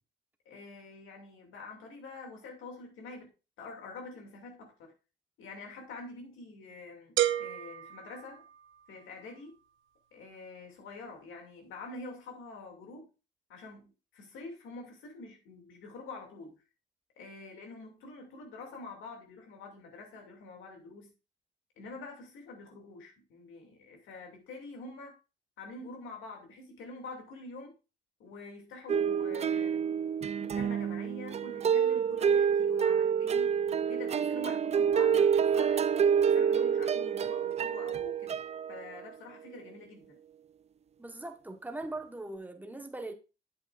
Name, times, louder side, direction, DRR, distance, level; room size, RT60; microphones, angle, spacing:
voice 1, 0.4-3.3 3.6-4.9 5.4-8.5 8.9-9.6 10.1-13.1 13.5-16.6 17.2-21.1 21.8-25.1 25.6-27.8 28.2-29.9 30.4-35.8 36.2-40.2, left 3 dB, 85° left, 2.6 m, -46 dB
sound 1, 7.2-9.0, right 13 dB, 80° right, 0.7 m, -32 dB
sound 2, 28.9-39.0, right 7 dB, 35° right, 0.4 m, -27 dB
voice 2, 41.0-43.1, right 2 dB, 10° right, 1.3 m, -40 dB
8.4 x 8.0 x 2.5 m
cardioid pair, 90°, 20 cm